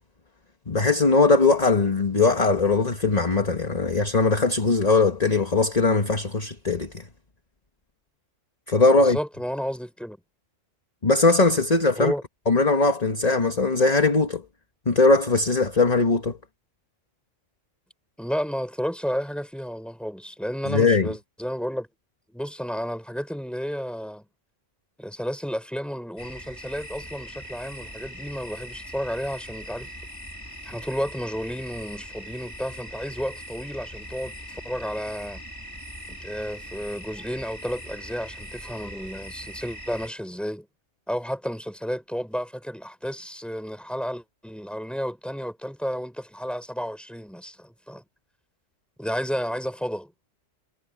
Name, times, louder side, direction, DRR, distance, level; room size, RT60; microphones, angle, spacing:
voice 1, 0.7-7.0 8.7-9.2 11.0-12.1 12.5-14.4 14.8-16.4 20.7-21.1, left 3 dB, 30° left, 1.6 m, -20 dB
voice 2, 9.0-10.2 11.9-12.2 18.2-21.9 22.3-24.2 25.0-29.9 30.6-35.4 36.1-40.7 41.1-48.0 49.0-50.1, equal, ahead, 6.4 m, -32 dB
sound 1, 26.2-40.1, equal, 15° left, 4.8 m, -41 dB
omnidirectional pair, 1.3 m